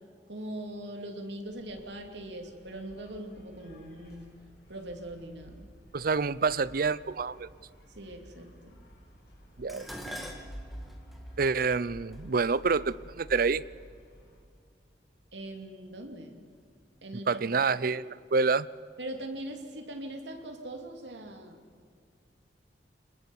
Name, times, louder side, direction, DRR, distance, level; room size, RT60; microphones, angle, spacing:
voice 1, 0.3-4.3 4.7-5.7 7.9-8.8 15.3-16.4 17.0-17.4 17.9-18.0 19.0-21.7, right 1 dB, 70° right, 4 dB, 2.9 m, -41 dB
sound 1, 1.5-14.4, equal, 60° left, 6.6 m, -51 dB
voice 2, 5.9-7.5 9.6-9.9 11.4-13.6 17.3-18.1 18.3-18.7, right 4 dB, 50° right, 19 dB, 0.5 m, -27 dB
Dishes pots and pans, 9.7-14.1 14.9-15.3 15.7-16.6 16.8-16.9, equal, ahead, 2.4 m, -46 dB
26.0 x 20.5 x 7.2 m, 2.1 s
head